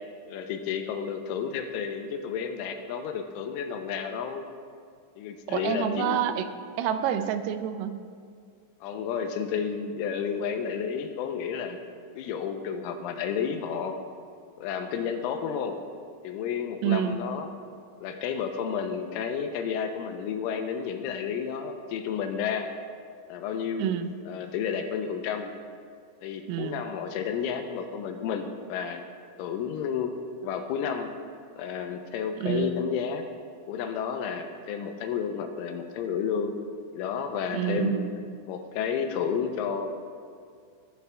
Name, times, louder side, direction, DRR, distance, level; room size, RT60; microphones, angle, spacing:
voice 1, 0.3-4.5 5.2-6.2 8.8-11.8 12.1-14.0 14.6-15.8 16.2-17.5 18.0-22.7 23.3-23.9 24.3-25.5 26.2-29.0 29.4-30.1 30.4-31.1 31.6-33.3 33.7-36.6 36.9-38.1 38.5-39.9, left 7 dB, 85° left, 6 dB, 3.2 m, -31 dB
voice 2, 5.5-6.5 6.8-8.0 16.8-17.2 23.8-24.1 26.5-26.8 32.4-32.7 37.5-38.1, right 9 dB, 85° right, 9 dB, 3.4 m, -28 dB
21.5 x 14.5 x 2.4 m, 2.2 s
omnidirectional pair, 5.9 m